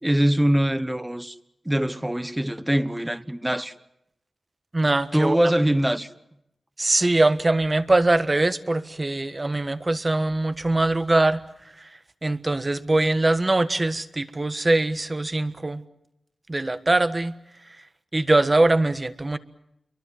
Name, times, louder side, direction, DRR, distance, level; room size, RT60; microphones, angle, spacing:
voice 1, 0.0-1.4 1.6-3.7 5.1-6.1, right 1 dB, 10° right, 1.2 m, -23 dB
voice 2, 4.7-5.4 6.8-11.4 11.8-11.9 12.2-15.8 16.5-17.3 18.1-19.4, right 2 dB, 35° right, 1.4 m, -22 dB
29.0 x 23.5 x 7.6 m
wide cardioid pair, 70°, 0 cm